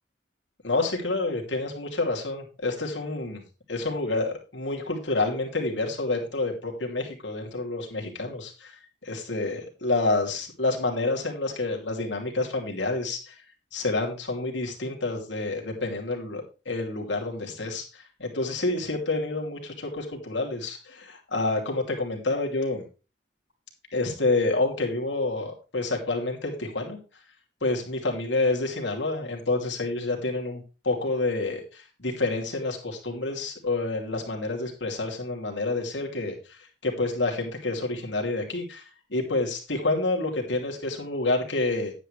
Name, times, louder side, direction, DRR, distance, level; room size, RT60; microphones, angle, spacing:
voice 1, 0.6-3.4 3.7-13.3 13.7-22.8 23.9-27.0 27.6-41.9, left 2 dB, 80° left, 1 dB, 2.9 m, -28 dB
10.5 x 9.1 x 3.3 m, 0.32 s
head